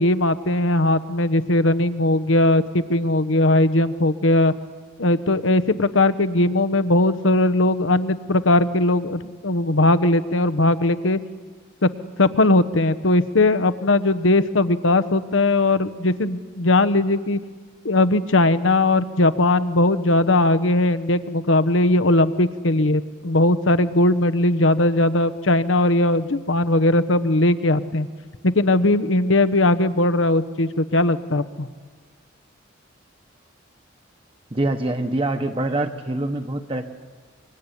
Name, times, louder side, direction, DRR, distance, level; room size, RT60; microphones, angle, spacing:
voice 1, 0.0-4.5 5.0-11.2 11.8-11.9 12.2-17.4 17.8-28.1 28.4-31.7, left 2 dB, 85° left, 12 dB, 1.1 m, -19 dB
voice 2, 34.5-36.9, right 2 dB, 30° right, 6 dB, 1.1 m, -25 dB
24.5 x 24.0 x 10.0 m, 1.5 s
head